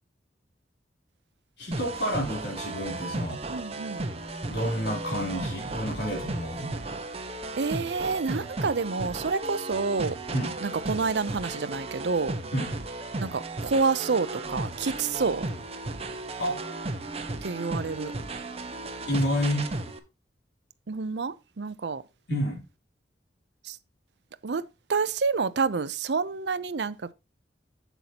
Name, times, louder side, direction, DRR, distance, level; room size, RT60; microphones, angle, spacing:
voice 1, 1.6-3.4 4.5-6.7 10.3-10.5 12.5-12.7 16.4-16.6 19.1-19.7 22.3-22.6, equal, 75° left, 3.5 m, -29 dB
sound 1, 1.7-20.0, right 2 dB, 35° right, 1.2 m, -35 dB
voice 2, 3.5-4.0 7.6-10.2 10.6-12.3 13.2-15.5 17.4-18.1 20.9-22.0 23.6-23.8 24.4-24.6 24.9-26.9, right 4 dB, 70° right, 0.6 m, -28 dB
8.1 x 8.1 x 2.9 m
head